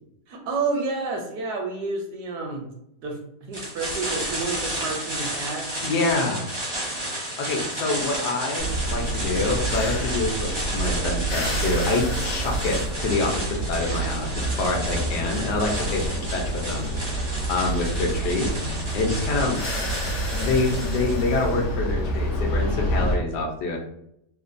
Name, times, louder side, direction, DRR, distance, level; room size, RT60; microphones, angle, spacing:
voice 1, 0.3-2.7 3.0-5.6, right 3 dB, 75° right, 1 dB, 1.1 m, -30 dB
sound 1, 3.5-21.2, right 1 dB, 30° right, 0.5 m, -32 dB
voice 2, 5.8-6.5 7.4-16.0 16.3-19.6 20.4-23.8, left 3 dB, 75° left, 1 dB, 1.2 m, -26 dB
sound 2, 8.6-23.2, right 1 dB, 55° left, 0.9 m, -28 dB
3.2 x 2.1 x 2.4 m, 0.78 s
omnidirectional pair, 1.8 m